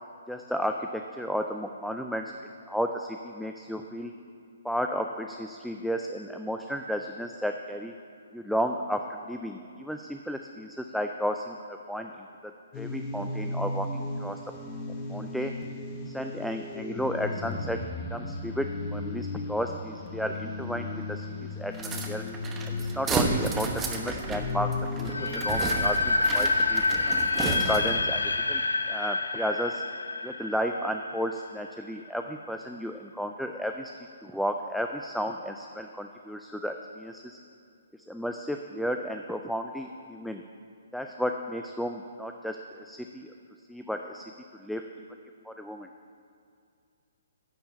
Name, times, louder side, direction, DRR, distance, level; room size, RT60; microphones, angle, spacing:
voice 1, 0.3-2.3 2.7-4.1 4.6-7.9 8.3-14.4 15.1-15.5 16.1-17.8 18.1-21.7 22.0-22.2 22.7-24.7 25.0-26.8 27.4-28.6 28.9-29.8 30.2-33.9 34.2-37.4 38.1-40.4 40.9-43.3 43.7-44.2 44.5-44.8 45.4-45.9, equal, ahead, 4 dB, 0.3 m, -33 dB
sound 1, 12.7-25.7, left 3 dB, 30° left, 0.9 m, -35 dB
sound 2, 21.7-28.1, right 3 dB, 15° right, 0.9 m, -32 dB
sound 3, 25.1-31.9, left 3 dB, 85° left, 0.5 m, -28 dB
10.5 x 4.5 x 7.5 m, 2.4 s
hypercardioid pair, 135°, 0 cm